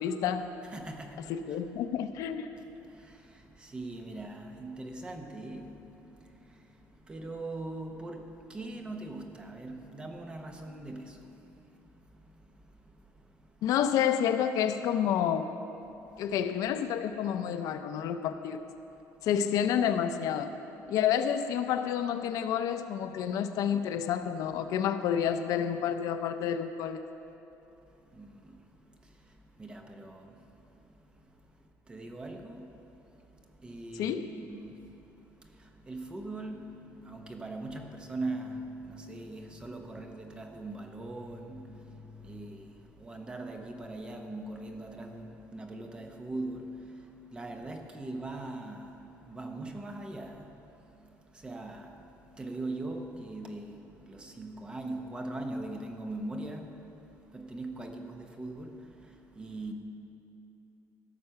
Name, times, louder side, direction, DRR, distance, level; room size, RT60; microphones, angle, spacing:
voice 1, 0.0-0.5 1.3-2.5 13.6-15.5 16.2-18.6 19.2-20.5 20.9-27.0 34.0-34.3, left 9 dB, 65° left, 0.5 m, -29 dB
voice 2, 0.7-1.6 2.8-13.6 16.1-16.3 18.9-19.0 27.9-59.7, right 2 dB, 15° right, 0.8 m, -42 dB
16.0 x 6.6 x 5.7 m
cardioid pair, 175°, 6 cm